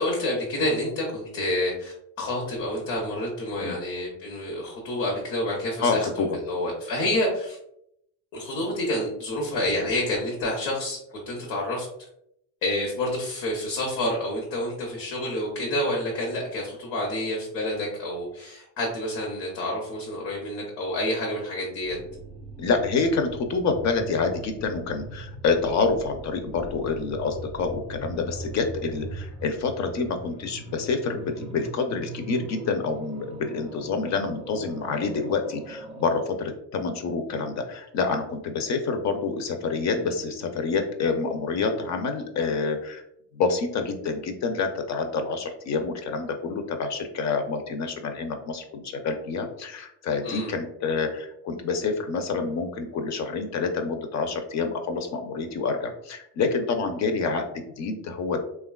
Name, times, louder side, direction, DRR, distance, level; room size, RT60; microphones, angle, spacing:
voice 1, 0.0-6.1 6.4-7.6 8.3-11.9 12.6-22.0 50.2-50.5, left 1 dB, 80° left, -2 dB, 0.9 m, -28 dB
voice 2, 5.8-6.3 22.6-43.0 43.3-58.4, left 4 dB, 40° left, 6 dB, 0.5 m, -27 dB
sound 1, 21.8-36.3, right 2 dB, 15° right, 0.5 m, -41 dB
3.1 x 2.3 x 2.2 m, 0.76 s
supercardioid pair, 75°, 47 cm